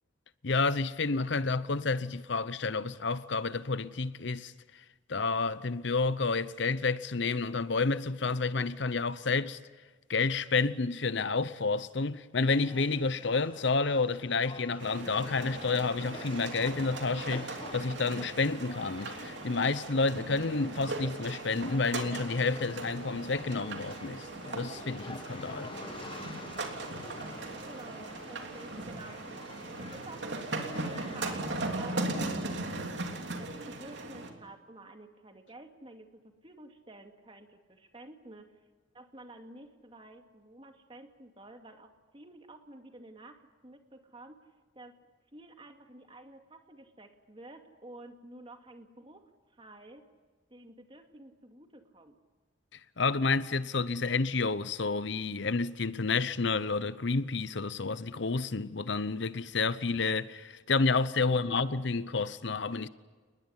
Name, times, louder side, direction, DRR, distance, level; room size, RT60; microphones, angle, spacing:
voice 1, 0.4-4.5 5.1-9.6 10.1-25.7 53.0-62.9, left 4 dB, 65° left, 0.8 m, -30 dB
sound 1, 12.6-32.2, left 2 dB, 25° left, 1.3 m, -49 dB
sound 2, 14.8-34.3, right 2 dB, 60° right, 3.3 m, -38 dB
voice 2, 27.6-33.0 33.4-38.6 38.9-45.0 45.3-50.1 50.5-52.2 61.3-61.9, right 1 dB, 25° right, 2.3 m, -51 dB
29.5 x 20.5 x 9.8 m
head